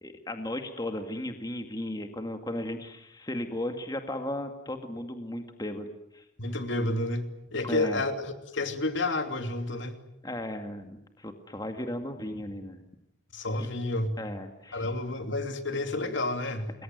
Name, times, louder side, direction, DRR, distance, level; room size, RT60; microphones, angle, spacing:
voice 1, 0.0-6.2 7.6-8.0 10.2-12.8 13.6-13.7 14.2-14.9, left 1 dB, 20° left, 6 dB, 2.1 m, -36 dB
voice 2, 6.4-7.2 7.5-9.9 13.3-14.2 14.7-16.7, left 2 dB, 65° left, 7 dB, 3.0 m, -30 dB
28.0 x 21.5 x 9.4 m, 0.81 s
head